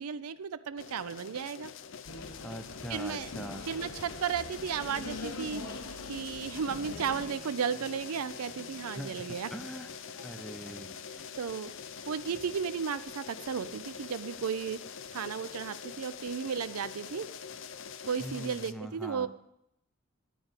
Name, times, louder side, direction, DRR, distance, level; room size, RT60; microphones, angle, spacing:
voice 1, 0.0-1.7 2.9-3.3 3.7-5.6 6.1-9.5 11.4-11.7 12.1-14.8 15.1-17.3 18.1-19.3, right 7 dB, 85° right, 14 dB, 0.5 m, -34 dB
sound 1, 0.8-18.7, left 6 dB, 60° left, 0.5 m, -45 dB
sound 2, 2.1-7.3, left 2 dB, 80° left, 1.1 m, -43 dB
voice 2, 2.4-3.7 8.9-9.9 10.2-10.9 18.2-19.3, equal, ahead, 5 dB, 0.7 m, -42 dB
Applause, 6.5-14.8, right 1 dB, 35° right, 1.3 m, -56 dB
11.0 x 5.0 x 8.1 m, 0.79 s
head